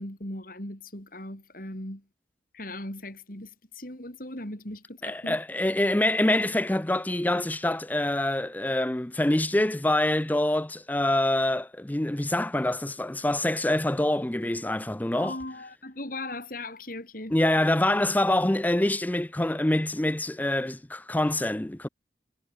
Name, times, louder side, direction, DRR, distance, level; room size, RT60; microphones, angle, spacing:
voice 1, 0.0-2.0 2.5-5.4 15.1-17.4, left 1 dB, 50° left, 5.9 m, -38 dB
voice 2, 5.0-15.3 17.3-21.9, left 1 dB, 10° left, 0.5 m, -25 dB
head